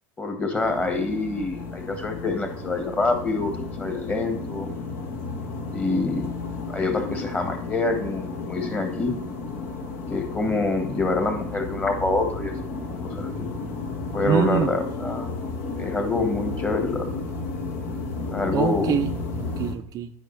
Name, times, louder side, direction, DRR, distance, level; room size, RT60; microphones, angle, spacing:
voice 1, 0.2-3.5 3.8-4.7 5.7-6.3 6.7-9.1 10.1-12.5 12.9-13.4 14.1-15.4 15.8-17.1 18.3-19.0, left 3 dB, 20° left, 5 dB, 1.4 m, -26 dB
sound 1, 0.5-19.7, left 3 dB, 70° left, 1.4 m, -33 dB
voice 2, 14.3-14.7 18.5-20.1, right 9 dB, 45° right, 9 dB, 0.4 m, -25 dB
9.0 x 5.2 x 3.2 m, 0.70 s
hypercardioid pair, 95°, 9 cm